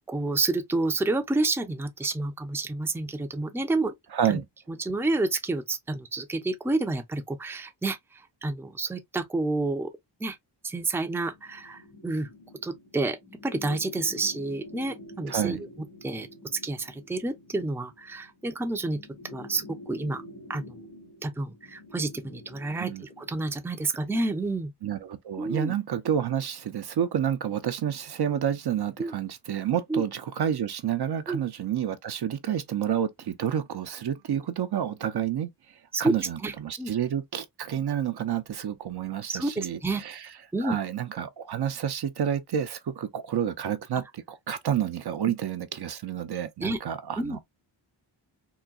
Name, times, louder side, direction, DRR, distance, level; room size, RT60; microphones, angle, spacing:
voice 1, 0.1-3.9 4.3-4.4 4.7-9.9 10.2-10.4 10.6-12.3 12.6-13.2 13.4-15.6 16.0-16.3 16.6-19.0 19.3-20.2 20.5-20.8 21.2-22.9 23.2-24.7 25.4-25.7 29.0-29.1 29.9-30.0 31.3-31.4 35.9-36.1 36.4-36.5 36.8-36.9 39.3-40.0 40.5-40.8 46.6-46.8 47.2-47.4, right 2 dB, 5° right, 0.5 m, -29 dB
voice 2, 4.1-4.4 15.3-15.6 22.8-23.0 24.8-40.3 40.6-47.4, right 9 dB, 55° right, 0.6 m, -29 dB
sound 1, 11.3-23.7, left 1 dB, 90° left, 1.5 m, -47 dB
3.8 x 2.2 x 2.3 m
cardioid pair, 65°, 47 cm